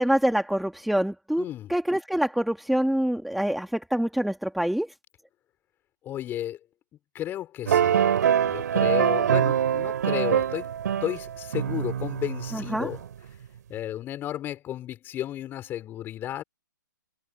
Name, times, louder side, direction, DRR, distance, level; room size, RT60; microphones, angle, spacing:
voice 1, 0.0-4.9 12.5-12.9, right 1 dB, ahead, 2.0 m, -26 dB
voice 2, 1.4-1.7 6.0-6.6 7.1-8.0 8.4-10.7 11.0-13.0 13.7-16.4, left 12 dB, 20° left, 4.7 m, -33 dB
sound 1, 7.7-13.1, right 9 dB, 60° right, 2.8 m, -24 dB
hypercardioid pair, 135°, 11 cm